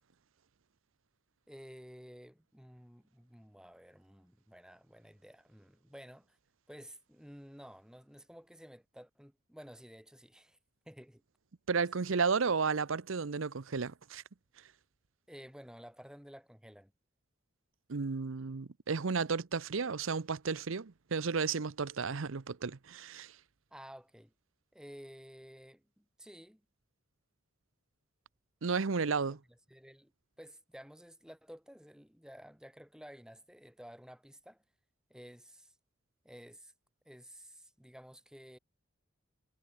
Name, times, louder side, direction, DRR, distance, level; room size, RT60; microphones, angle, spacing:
voice 1, 1.5-6.4 6.7-10.6 10.8-11.2 15.3-16.9 23.7-24.3 24.7-26.6 29.5-30.1 30.4-34.6 35.1-35.8 36.2-36.7 37.0-38.6, equal, 5° right, 4.3 m, -53 dB
voice 2, 11.7-14.2 17.9-23.3 28.6-29.4, right 5 dB, 75° right, 0.7 m, -33 dB
head